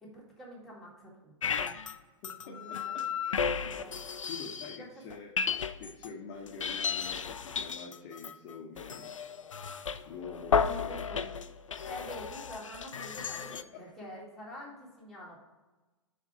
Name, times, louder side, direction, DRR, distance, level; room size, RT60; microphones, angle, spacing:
voice 1, 0.0-1.8 2.4-3.0 3.3-3.9 4.8-4.9 10.4-11.3 11.7-15.4, equal, ahead, -6 dB, 1.9 m, -47 dB
sound 1, 1.4-2.0 2.2-4.8 5.1-6.1 6.5-13.6, left 6 dB, 85° left, 0.4 m, -34 dB
voice 2, 2.2-2.8 3.6-4.0 4.3-5.3 5.8-9.1 10.0-11.0, left 5 dB, 35° left, -1 dB, 0.9 m, -46 dB
4.8 x 4.6 x 5.6 m, 1.2 s
figure-of-eight pair, 110°, 16 cm